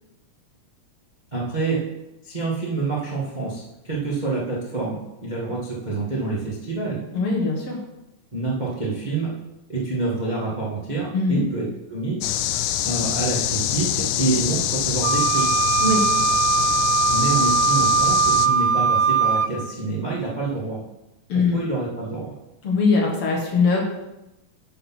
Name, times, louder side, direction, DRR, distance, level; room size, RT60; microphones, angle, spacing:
voice 1, 1.3-1.8 2.2-7.0 8.3-9.3 9.7-12.2 12.8-15.5 17.1-20.8 21.5-22.3, right 3 dB, 55° right, -5 dB, 0.4 m, -27 dB
voice 2, 7.1-7.8 11.1-11.5 15.8-16.0 21.3-21.6 22.6-23.8, left 4 dB, 55° left, -1 dB, 2.0 m, -21 dB
sound 1, 12.2-18.5, left 12 dB, 80° left, 1.9 m, -25 dB
Wind instrument woodwind instrument, 15.0-19.5, right 6 dB, 80° right, 2.4 m, -20 dB
11.0 x 4.0 x 6.0 m, 0.94 s
omnidirectional pair, 3.8 m